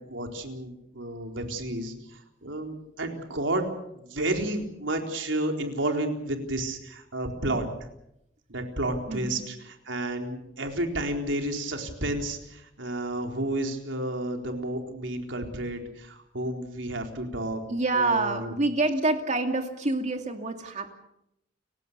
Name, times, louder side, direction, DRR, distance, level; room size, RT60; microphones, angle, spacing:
voice 1, 0.1-3.6 3.9-7.6 8.5-17.6 17.9-18.5, right 1 dB, 80° right, 3 dB, 4.2 m, -31 dB
voice 2, 9.1-9.5 17.7-20.9, right 2 dB, 40° right, 5 dB, 2.3 m, -27 dB
30.0 x 17.0 x 6.8 m, 0.81 s
head